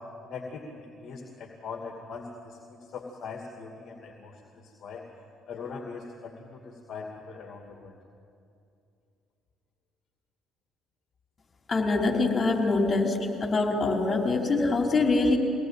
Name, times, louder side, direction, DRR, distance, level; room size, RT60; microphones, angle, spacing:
voice 1, 0.2-5.0 5.5-7.9, left 4 dB, 55° left, 1 dB, 2.4 m, -41 dB
voice 2, 11.7-15.4, left 3 dB, 35° left, 0 dB, 4.9 m, -24 dB
23.5 x 19.0 x 9.1 m, 2.6 s
hypercardioid pair, 55°, 0 cm